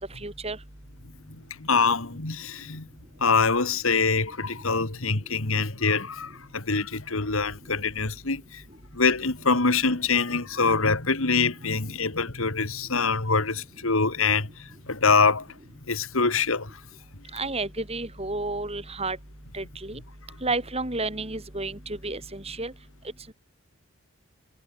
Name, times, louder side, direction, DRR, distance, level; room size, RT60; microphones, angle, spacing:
voice 1, 0.2-0.6 17.3-19.2 19.5-20.0 20.4-22.7, right 3 dB, 30° right, 5.2 m, -31 dB
voice 2, 1.6-2.9 3.2-8.6 8.9-14.5 14.9-15.5 15.9-16.7, left 4 dB, 70° left, 2.3 m, -24 dB
head